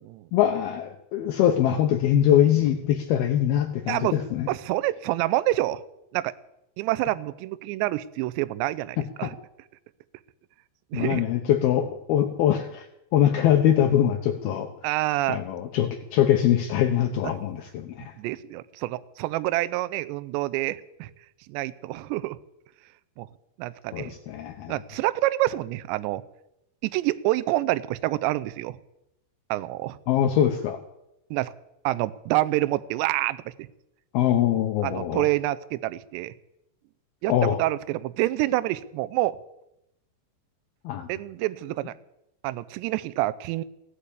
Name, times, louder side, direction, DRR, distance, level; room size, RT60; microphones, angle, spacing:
voice 1, 0.3-4.5 9.2-9.3 10.9-12.9 13.1-14.7 15.3-18.1 23.9-24.7 30.1-30.8 34.1-35.2 37.3-37.6 40.8-41.1, left 10 dB, 80° left, 6 dB, 2.2 m, -23 dB
voice 2, 4.5-5.8 6.1-6.3 6.8-9.4 10.9-11.3 14.8-15.4 18.0-21.1 21.5-22.4 23.2-23.3 23.6-24.1 24.7-26.2 26.8-28.8 29.5-30.0 31.3-31.5 31.8-33.7 34.8-36.3 37.2-39.4 41.1-41.9 42.4-43.6, right 17 dB, 80° right, 15 dB, 2.7 m, -27 dB
16.0 x 10.5 x 8.5 m, 0.85 s
omnidirectional pair, 5.5 m